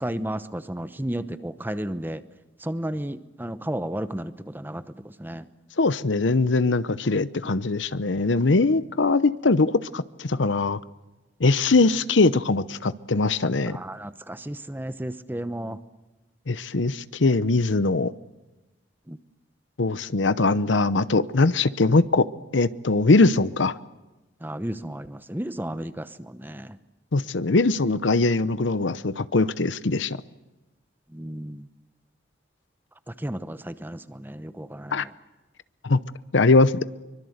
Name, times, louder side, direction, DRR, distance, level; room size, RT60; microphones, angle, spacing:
voice 1, 0.0-2.2 2.6-4.8 5.2-5.4 13.7-15.8 19.1-19.2 24.4-26.1 26.4-26.7 31.1-31.6 33.2-35.0, right 1 dB, 10° right, 12 dB, 0.9 m, -33 dB
voice 2, 5.8-10.8 11.4-13.8 16.5-18.1 19.8-22.3 22.5-23.8 27.1-30.2 34.9-35.0 35.8-36.0 36.3-36.8, left 3 dB, 80° left, 15 dB, 0.8 m, -21 dB
24.0 x 23.0 x 8.1 m, 1.1 s
head